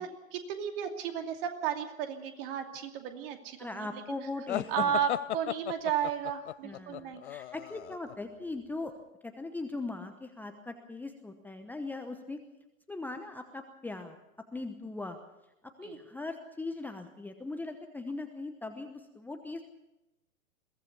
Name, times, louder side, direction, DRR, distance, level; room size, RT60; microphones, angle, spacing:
voice 1, 0.0-4.0 4.7-7.2 15.8-16.0, right 8 dB, 40° right, 5 dB, 2.7 m, -33 dB
voice 2, 3.6-5.0 6.6-8.9 9.2-12.4 12.9-14.2 14.5-15.2 15.6-19.6, left 2 dB, 5° left, 6 dB, 1.0 m, -40 dB
sound 1, 4.5-8.2, left 13 dB, 55° left, 0.7 m, -36 dB
22.5 x 17.0 x 6.8 m, 0.95 s
figure-of-eight pair, 115°, 41 cm